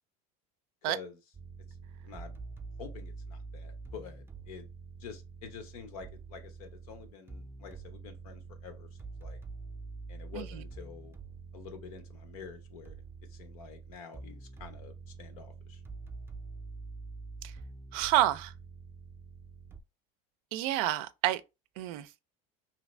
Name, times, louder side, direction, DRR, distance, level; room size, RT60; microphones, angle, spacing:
voice 1, 0.8-1.2 2.0-2.4 2.8-4.7 5.0-8.9 9.2-9.4 10.1-11.2 11.5-13.0 13.3-15.8, left 6 dB, 90° left, 0.9 m, -48 dB
sound 1, 1.3-19.8, right 4 dB, 15° right, 0.4 m, -46 dB
voice 2, 17.9-18.5 20.5-21.4 21.8-22.1, right 14 dB, 75° right, 0.4 m, -28 dB
2.8 x 2.6 x 3.2 m
supercardioid pair, 120°, 18 cm